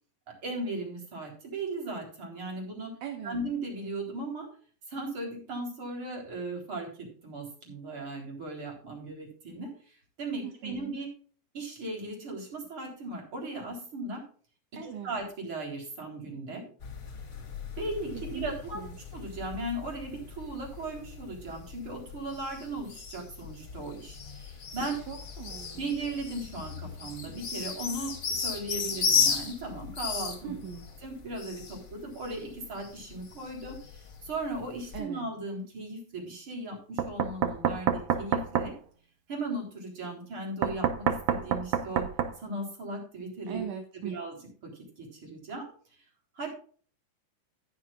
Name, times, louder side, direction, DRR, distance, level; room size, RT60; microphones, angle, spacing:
voice 1, 0.4-2.9 3.2-4.5 4.9-11.1 11.5-14.2 14.8-16.7 17.8-18.8 19.1-25.0 25.8-30.5 31.0-38.7 39.3-42.0 42.4-43.7 43.9-45.7 46.4-46.6, right 2 dB, 35° right, 0 dB, 4.6 m, -37 dB
voice 2, 3.0-3.4 10.4-10.9 14.7-15.1 18.3-19.0 25.1-25.9 30.4-30.8 34.9-35.3 43.5-44.2, right 8 dB, 65° right, 4 dB, 2.6 m, -40 dB
sound 1, 16.8-35.0, left 6 dB, 45° left, 1.6 m, -36 dB
Knock, 37.0-38.7 40.6-42.3, right 8 dB, 90° right, 1.4 m, -27 dB
15.0 x 9.8 x 2.5 m, 0.44 s
omnidirectional pair, 4.3 m